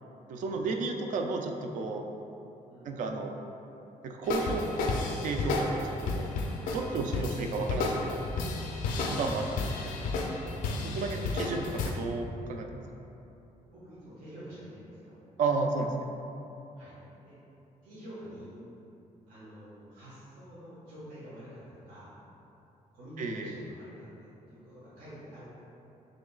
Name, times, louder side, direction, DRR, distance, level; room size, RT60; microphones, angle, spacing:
voice 1, 0.3-2.1 2.9-3.3 4.0-5.0 5.2-6.3 6.7-8.2 9.1-10.0 10.8-12.7 15.4-15.9 23.2-23.5, right 3 dB, 65° right, 3 dB, 0.4 m, -32 dB
sound 1, 4.3-11.9, left 3 dB, 80° left, 0.5 m, -32 dB
voice 2, 13.6-15.2 16.7-17.0 17.2-17.3 17.8-18.6 19.3-22.1 22.9-25.4, equal, 85° right, -11 dB, 1.4 m, -48 dB
6.1 x 3.0 x 2.3 m, 3.0 s
cardioid pair, 155°, 14 cm